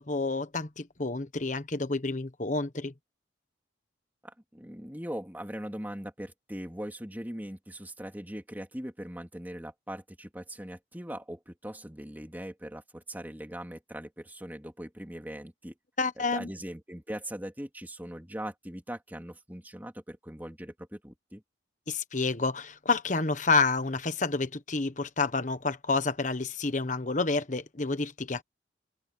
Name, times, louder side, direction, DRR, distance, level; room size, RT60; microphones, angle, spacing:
voice 1, 0.0-2.9 16.0-16.5 21.9-28.4, left 3 dB, 45° left, 1.2 m, -29 dB
voice 2, 4.2-15.7 16.2-21.4, equal, 10° right, 2.9 m, -40 dB
head